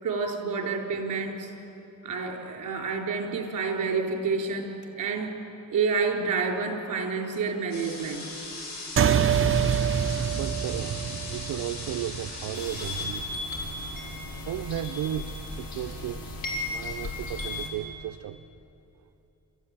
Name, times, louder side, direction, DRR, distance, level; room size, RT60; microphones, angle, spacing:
voice 1, 0.0-1.5 2.0-5.3 5.7-8.2, right 5 dB, 60° right, 1 dB, 4.0 m, -29 dB
sound 1, 7.7-13.1, left 2 dB, 50° left, 7.4 m, -39 dB
sound 2, 9.0-13.8, right 8 dB, 35° right, 0.8 m, -26 dB
voice 2, 10.3-13.3 14.5-16.4 16.7-18.4, right 12 dB, 75° right, 9 dB, 0.6 m, -34 dB
sound 3, 12.5-17.7, left 2 dB, 75° left, 3.8 m, -35 dB
27.5 x 14.0 x 8.9 m, 3.0 s
cardioid pair, 140°, 35 cm